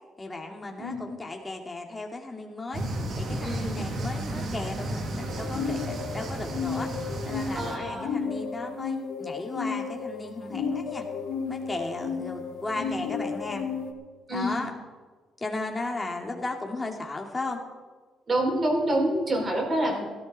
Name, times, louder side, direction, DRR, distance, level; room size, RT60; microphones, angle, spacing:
voice 1, 0.2-2.8 3.2-6.9 7.2-11.0 11.5-13.7 14.3-14.7 15.4-17.6 19.9-20.0, left 2 dB, 20° left, 1 dB, 2.5 m, -35 dB
sound 1, 2.7-7.8, right 1 dB, 60° right, 2.0 m, -33 dB
voice 2, 3.4-3.8 7.5-8.2 12.7-13.1 14.3-14.6 18.3-20.0, right 1 dB, 40° right, 1 dB, 4.8 m, -27 dB
sound 2, 5.2-13.9, left 5 dB, 75° left, 1.7 m, -33 dB
16.5 x 14.0 x 4.3 m, 1.4 s
cardioid pair, 90°, 0 cm